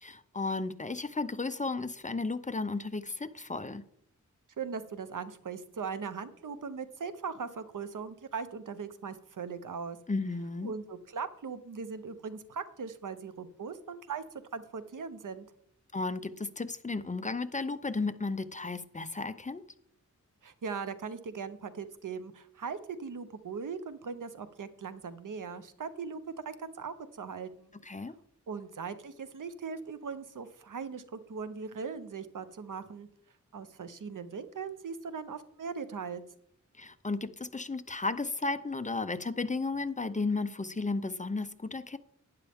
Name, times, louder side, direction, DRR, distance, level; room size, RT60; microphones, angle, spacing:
voice 1, 0.0-3.8 10.1-10.7 15.9-19.6 27.8-28.1 36.8-42.0, left 3 dB, 25° left, 11 dB, 0.6 m, -34 dB
voice 2, 4.6-10.0 10.6-14.2 14.5-15.5 20.4-27.7 28.5-33.1 33.5-36.2, right 5 dB, 85° right, 12 dB, 0.9 m, -39 dB
11.5 x 9.9 x 3.6 m, 0.67 s
wide cardioid pair, 90°, 31 cm